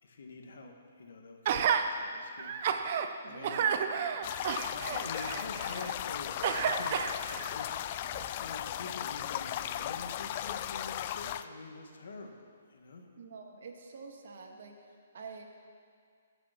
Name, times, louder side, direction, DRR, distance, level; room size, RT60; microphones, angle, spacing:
voice 1, 0.0-2.6 3.3-3.8 4.6-12.3 12.7-13.0, left 3 dB, 70° left, 3 dB, 1.6 m, -46 dB
Gasp, 1.5-1.8 2.4-3.1 3.4-5.9 6.4-7.5 8.1-8.2, right 7 dB, 40° right, 0.6 m, -31 dB
voice 2, 3.2-3.8 4.2-4.3 13.2-15.5, right 4 dB, 60° right, 2 dB, 1.6 m, -48 dB
sound 1, 4.2-11.5, left 11 dB, 35° left, 0.3 m, -36 dB
17.0 x 6.0 x 5.9 m, 2.1 s
hypercardioid pair, 165°, 0 cm